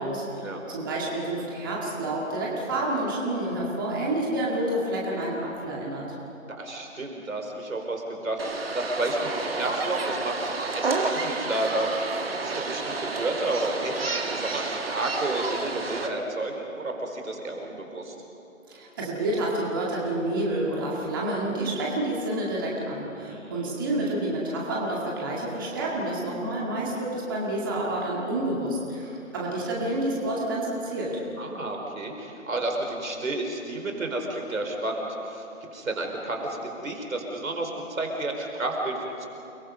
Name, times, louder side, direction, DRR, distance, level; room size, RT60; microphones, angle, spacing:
voice 1, 0.0-6.1 18.7-31.2, right 1 dB, 15° right, -4 dB, 2.0 m, -29 dB
voice 2, 6.5-18.1 23.3-23.7 31.4-39.3, right 2 dB, 70° right, 2 dB, 4.6 m, -31 dB
sound 1, 8.4-16.1, right 3 dB, 45° right, 1.9 m, -30 dB
29.5 x 22.0 x 5.4 m, 2.9 s
hypercardioid pair, 170°, 42 cm